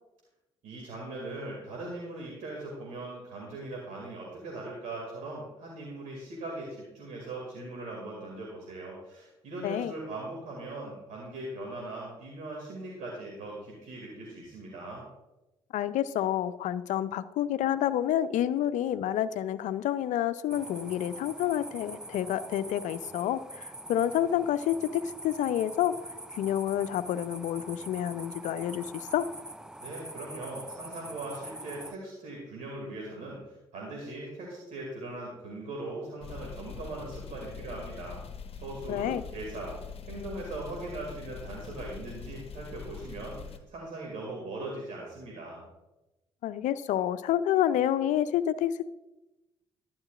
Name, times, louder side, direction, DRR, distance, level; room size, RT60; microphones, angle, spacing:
voice 1, 0.6-15.0 29.8-38.2 38.6-39.7 40.1-45.6, right 2 dB, 65° right, -2 dB, 2.2 m, -40 dB
voice 2, 15.7-26.0 26.3-29.3 38.9-39.2 46.4-48.9, left 11 dB, 65° left, 14 dB, 0.5 m, -29 dB
sound 1, 20.5-32.0, right 1 dB, 5° right, 0.3 m, -44 dB
sound 2, 36.2-43.6, left 6 dB, 45° left, 0.9 m, -43 dB
11.5 x 10.0 x 2.4 m, 1.0 s
hypercardioid pair, 45°, 14 cm